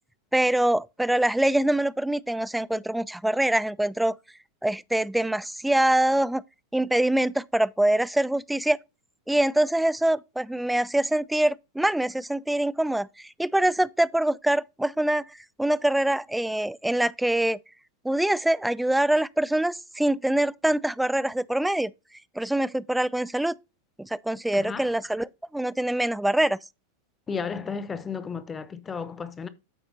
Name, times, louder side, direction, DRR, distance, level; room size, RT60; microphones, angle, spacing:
voice 1, 0.3-4.2 4.6-6.4 6.7-8.8 9.3-15.2 15.6-17.6 18.0-21.9 22.4-23.6 24.0-26.6, right 1 dB, 5° right, 0.3 m, -24 dB
voice 2, 24.5-24.9 27.3-29.5, left 5 dB, 20° left, 0.8 m, -33 dB
13.5 x 5.0 x 2.7 m
figure-of-eight pair, 90°, 0 cm